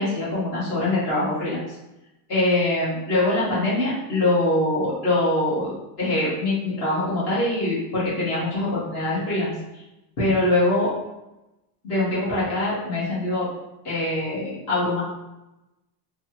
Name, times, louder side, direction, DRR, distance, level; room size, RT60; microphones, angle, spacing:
voice 1, 0.0-1.6 2.3-5.7 6.0-9.5 10.2-10.9 11.8-13.5 13.8-15.0, left 2 dB, 35° left, -9 dB, 1.5 m, -23 dB
3.2 x 2.3 x 3.0 m, 0.96 s
cardioid pair, 170°, 44 cm